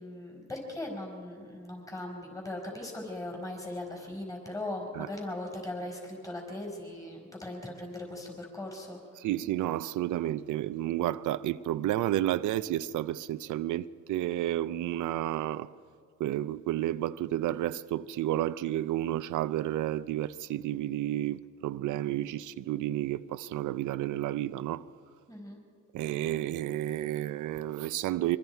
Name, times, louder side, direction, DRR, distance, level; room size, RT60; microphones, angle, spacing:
voice 1, 0.0-9.2 25.3-25.6, left 1 dB, 10° left, 5.0 m, -39 dB
voice 2, 9.2-15.7 16.2-24.9 25.9-28.4, right 13 dB, 80° right, 0.7 m, -31 dB
25.0 x 24.0 x 4.7 m
cardioid pair, 90°, 30 cm